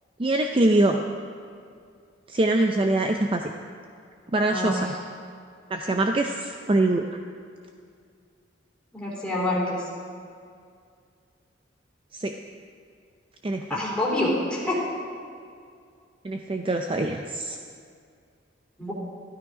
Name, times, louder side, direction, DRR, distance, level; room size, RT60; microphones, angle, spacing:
voice 1, 0.2-1.0 2.3-3.4 4.3-4.8 5.7-7.1 12.1-12.3 13.4-13.8 16.2-17.6, right 2 dB, 30° right, 4 dB, 0.5 m, -23 dB
voice 2, 4.5-4.8 8.9-9.9 13.7-14.8 18.8-18.9, left 1 dB, 5° left, -6 dB, 3.2 m, -26 dB
13.0 x 12.0 x 5.0 m, 2.3 s
head